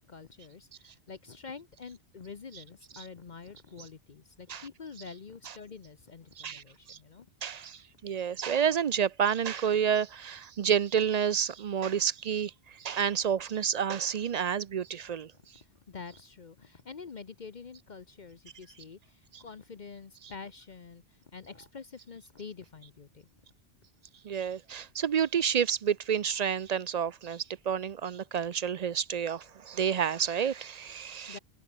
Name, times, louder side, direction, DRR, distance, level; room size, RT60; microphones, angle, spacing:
voice 1, 0.0-7.3 15.9-21.0 21.3-23.3 31.0-31.4, left 5 dB, 45° left, 1.0 m, -47 dB
voice 2, 7.4-12.5 12.8-15.3 19.3-19.4 24.2-31.4, right 8 dB, 50° right, 0.5 m, -29 dB
omnidirectional pair, 1.1 m